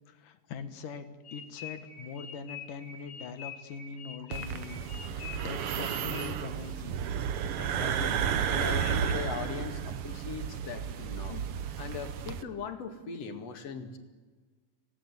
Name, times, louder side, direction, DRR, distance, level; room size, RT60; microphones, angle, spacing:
voice 1, 0.1-7.0 8.8-9.1 11.3-11.5, left 6 dB, 70° left, 10 dB, 3.1 m, -42 dB
sound 1, 1.3-6.6, left 7 dB, 85° left, 5.2 m, -45 dB
sound 2, 4.3-12.4, right 8 dB, 70° right, 1.4 m, -32 dB
voice 2, 7.6-11.4 11.8-14.0, left 6 dB, 50° left, 6 dB, 2.9 m, -39 dB
26.0 x 18.0 x 9.7 m, 1.4 s
omnidirectional pair, 4.0 m